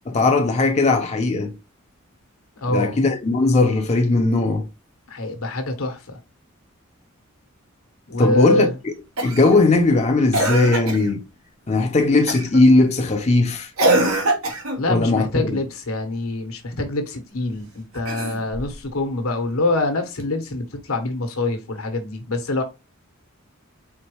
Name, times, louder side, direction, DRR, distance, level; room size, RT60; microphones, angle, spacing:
voice 1, 0.1-1.6 2.7-4.7 8.2-8.9 9.2-11.2 11.7-13.7 14.9-15.6, left 2 dB, 30° left, 0.6 m, -18 dB
voice 2, 2.6-3.0 5.1-6.2 8.1-8.8 14.8-22.6, left 2 dB, 85° left, 1.2 m, -25 dB
Cough, 9.2-9.5 10.3-11.1 12.3-12.6 13.8-14.8 17.9-18.7 20.2-20.3, right 2 dB, 85° right, 1.4 m, -22 dB
4.4 x 3.9 x 3.1 m
head